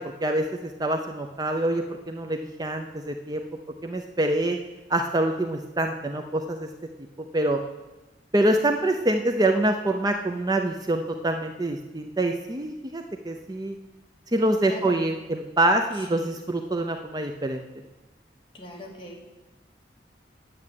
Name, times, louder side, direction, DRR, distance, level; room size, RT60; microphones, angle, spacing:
voice 1, 0.2-3.5 3.8-4.6 4.9-6.7 7.3-7.6 8.3-13.7 14.3-17.6, right 1 dB, 20° right, 4 dB, 0.6 m, -25 dB
voice 2, 14.6-14.9 15.9-16.5 18.5-19.2, left 1 dB, 30° left, -2 dB, 2.4 m, -41 dB
9.8 x 7.4 x 9.3 m, 1.1 s
head